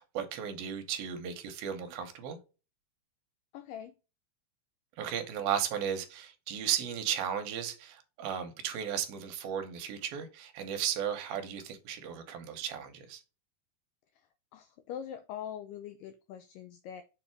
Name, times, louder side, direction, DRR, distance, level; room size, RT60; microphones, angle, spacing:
voice 1, 0.0-2.4 5.0-13.2, right 9 dB, 75° right, 2.5 m, -35 dB
voice 2, 3.5-3.9 14.5-17.0, left 9 dB, 90° left, 1.9 m, -43 dB
6.9 x 3.3 x 4.5 m
omnidirectional pair, 4.5 m